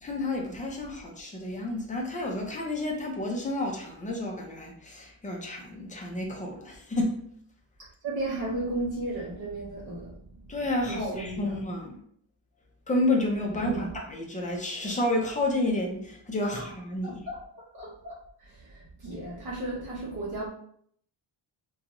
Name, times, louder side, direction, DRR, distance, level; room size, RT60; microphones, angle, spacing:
voice 1, 0.0-7.2 10.5-12.0 12.9-17.2, left 2 dB, 15° left, 0 dB, 0.4 m, -30 dB
voice 2, 8.0-10.2 10.9-11.5 13.5-13.9 16.5-16.7 17.0-18.1 18.4-20.5, right 2 dB, 50° right, -6 dB, 0.7 m, -34 dB
2.5 x 2.3 x 2.9 m, 0.65 s
wide cardioid pair, 165°, 47 cm